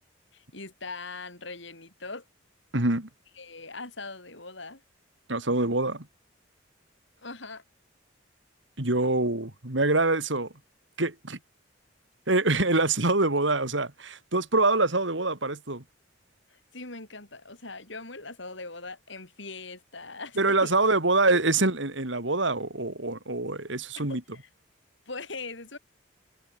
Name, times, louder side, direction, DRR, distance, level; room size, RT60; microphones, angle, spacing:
voice 1, 0.3-2.2 3.4-4.8 7.2-7.6 16.5-20.8 24.0-24.4 25.1-25.8, left 3 dB, 65° left, 7.2 m, -41 dB
voice 2, 2.7-3.1 5.3-6.1 8.8-10.5 11.0-11.4 12.3-15.8 20.4-24.2, right 2 dB, 65° right, 3.1 m, -25 dB
head